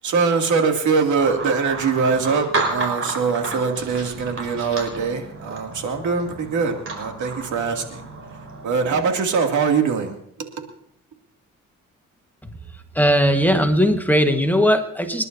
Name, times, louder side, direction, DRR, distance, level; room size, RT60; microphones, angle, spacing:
voice 1, 0.0-8.1 8.6-10.5, right 5 dB, 75° right, 3 dB, 2.5 m, -22 dB
sound 1, 1.2-9.1, right 3 dB, 45° right, 5.1 m, -31 dB
voice 2, 12.9-15.2, equal, 5° left, 5 dB, 1.3 m, -18 dB
28.0 x 11.0 x 2.7 m, 0.68 s
cardioid pair, 90°, 30 cm